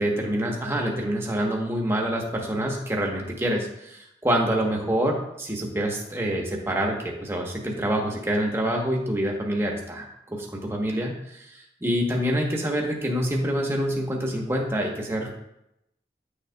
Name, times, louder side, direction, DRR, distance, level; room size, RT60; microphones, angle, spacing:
voice 1, 0.0-15.3, equal, 15° right, 0 dB, 1.0 m, -26 dB
9.5 x 6.4 x 2.3 m, 0.82 s
head